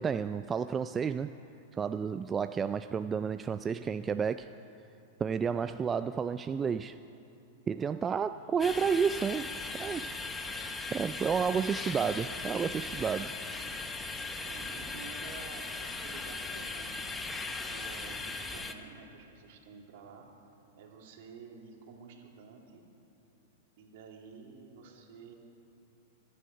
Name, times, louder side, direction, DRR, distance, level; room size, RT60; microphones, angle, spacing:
voice 1, 0.0-1.3 1.7-4.5 5.2-7.0 7.7-9.5 9.8-10.2 10.9-13.3, right 6 dB, 20° right, 11 dB, 0.3 m, -31 dB
Singing / Musical instrument, 7.9-19.2, left 4 dB, 40° left, 2.1 m, -57 dB
sound 1, 8.6-18.7, left 3 dB, 15° left, 1.1 m, -38 dB
voice 2, 14.4-17.1 17.5-20.3 20.8-22.8 23.8-25.3, right 5 dB, 65° right, 0 dB, 2.9 m, -51 dB
24.5 x 10.0 x 5.5 m, 2.9 s
hypercardioid pair, 125°, 0 cm